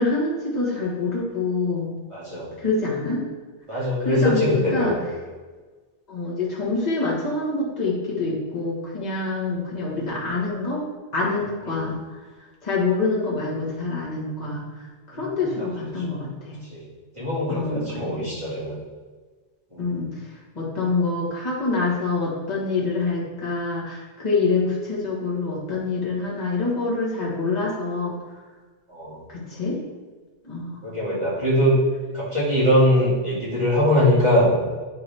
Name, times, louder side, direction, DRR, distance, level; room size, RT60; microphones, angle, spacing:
voice 1, 0.0-1.9 2.6-3.2 3.7-5.0 6.1-10.8 11.1-12.0 12.6-14.6 15.1-16.6 17.5-18.3 19.8-20.1 20.6-28.1 29.3-29.8 30.4-30.8, left 3 dB, 35° left, -5 dB, 1.8 m, -26 dB
voice 2, 2.1-2.5 3.7-5.0 11.7-11.9 15.2-15.5 16.7-16.8 17.1-18.8 19.7-19.9 28.9-29.2 30.8-31.7 32.1-34.5, equal, 25° right, -11 dB, 2.4 m, -22 dB
9.8 x 3.9 x 3.5 m, 1.4 s
omnidirectional pair, 1.2 m